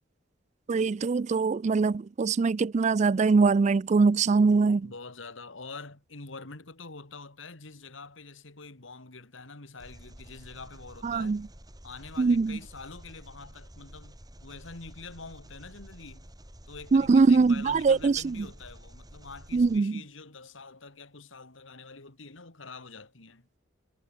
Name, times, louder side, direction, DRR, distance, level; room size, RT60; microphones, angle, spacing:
voice 1, 0.7-4.9 11.0-11.5 12.2-12.6 16.9-18.5 19.5-20.0, right 4 dB, 35° right, 0.3 m, -23 dB
voice 2, 4.8-11.4 11.8-16.3 16.7-23.5, left 4 dB, 80° left, 2.4 m, -46 dB
Engine, 9.8-19.8, equal, 20° right, 6.3 m, -50 dB
head